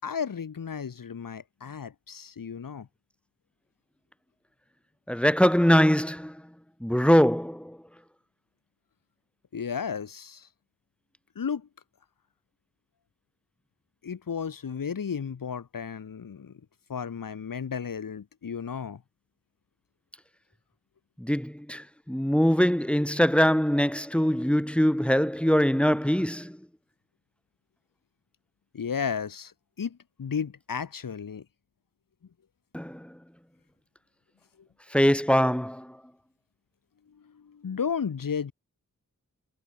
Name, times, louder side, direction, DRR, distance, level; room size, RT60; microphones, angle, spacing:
voice 1, 0.0-2.9 9.5-10.5 11.4-11.7 14.0-16.6 16.9-19.0 28.7-31.4 37.1-38.5, left 6 dB, 90° left, 5.5 m, -34 dB
voice 2, 5.1-6.4 6.8-7.8 21.2-26.6 32.7-33.2 34.9-36.0, equal, 5° left, 6.9 m, -23 dB
wide cardioid pair, 105°, 32 cm